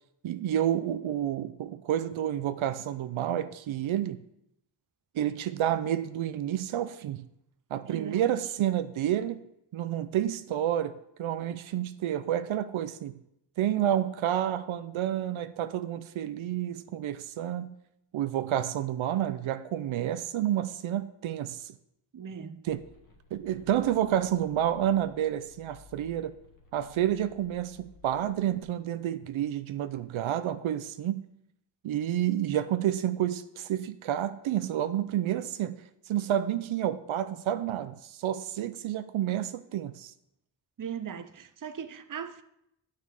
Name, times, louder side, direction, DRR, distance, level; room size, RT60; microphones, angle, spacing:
voice 1, 0.2-4.2 5.1-7.3 7.7-9.4 9.7-13.2 13.6-17.7 18.1-21.7 22.6-22.8 23.3-26.3 26.7-31.2 31.8-35.8 36.1-40.1, right 11 dB, 90° right, 0.6 m, -29 dB
voice 2, 7.9-8.3 22.1-22.7 28.5-28.6 40.8-42.4, right 8 dB, 45° right, 0.7 m, -39 dB
sound 1, 22.7-28.6, left 3 dB, 40° left, 1.8 m, -56 dB
9.6 x 5.8 x 4.8 m
cardioid pair, 70°, 46 cm